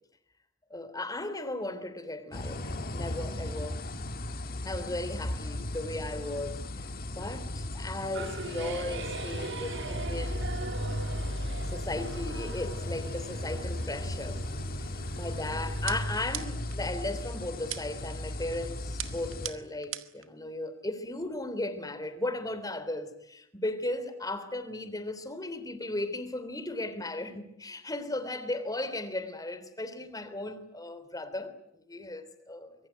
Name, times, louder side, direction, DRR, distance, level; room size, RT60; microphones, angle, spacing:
voice 1, 0.7-3.8 4.6-6.6 7.2-10.6 11.7-14.4 14.8-32.8, left 2 dB, 20° left, 3.3 m, -36 dB
sound 1, 2.3-19.5, left 1 dB, 50° left, 1.9 m, -36 dB
sound 2, 8.1-16.1, right 4 dB, 60° right, 1.6 m, -42 dB
sound 3, 15.9-16.8 17.7-18.1 19.0-20.3, right 12 dB, 75° right, 1.9 m, -39 dB
25.0 x 23.0 x 9.3 m
head